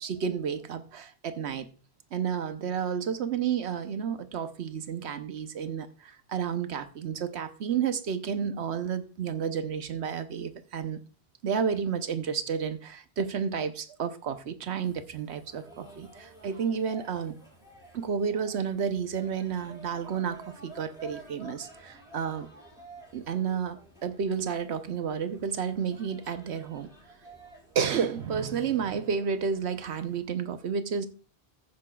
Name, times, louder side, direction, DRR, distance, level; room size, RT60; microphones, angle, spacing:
voice 1, 0.0-1.7 2.1-11.0 11.4-17.4 17.9-22.5 23.1-26.9 27.7-31.1, right 7 dB, 90° right, 1.1 m, -31 dB
sound 1, 14.8-30.2, right 2 dB, 5° right, 4.9 m, -52 dB
14.5 x 8.8 x 2.3 m
omnidirectional pair, 1.1 m